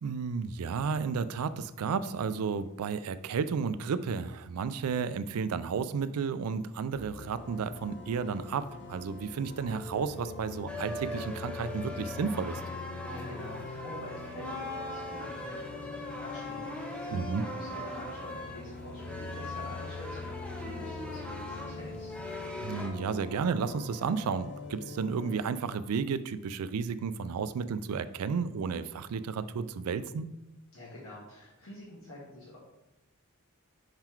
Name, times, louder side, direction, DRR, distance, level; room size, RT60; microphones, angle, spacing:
voice 1, 0.0-12.6 17.1-17.5 22.6-30.3, right 5 dB, 80° right, 13 dB, 0.4 m, -32 dB
sound 1, 6.9-25.4, left 3 dB, 50° left, 0.6 m, -43 dB
sound 2, 10.7-22.9, left 1 dB, 5° left, 0.6 m, -41 dB
voice 2, 13.0-22.1 30.7-32.6, left 1 dB, 65° left, -6 dB, 1.7 m, -47 dB
5.6 x 3.8 x 4.4 m, 0.97 s
head